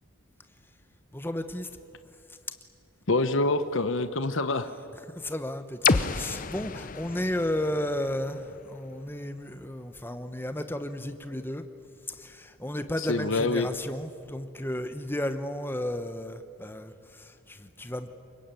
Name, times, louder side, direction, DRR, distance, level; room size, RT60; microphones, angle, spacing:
voice 1, 1.1-1.7 2.3-2.4 4.7-11.6 12.1-18.1, left 1 dB, 10° left, 9 dB, 1.0 m, -33 dB
voice 2, 3.1-4.7 13.1-13.7, left 2 dB, 60° left, 10 dB, 1.0 m, -26 dB
sound 1, 5.8-9.7, left 5 dB, 40° left, 0.7 m, -31 dB
24.5 x 21.5 x 9.2 m, 2.4 s
head